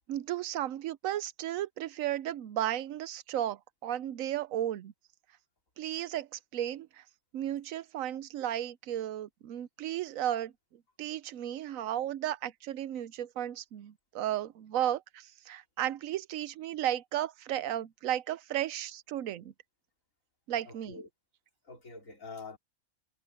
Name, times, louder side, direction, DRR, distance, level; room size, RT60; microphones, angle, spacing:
voice 1, 0.1-4.9 5.8-7.0 7.3-10.5 11.0-19.5 20.5-21.0, right 12 dB, 85° right, 1.1 m, -34 dB
voice 2, 20.7-21.1 21.6-22.6, left 4 dB, 80° left, 3.5 m, -45 dB
omnidirectional pair, 1.4 m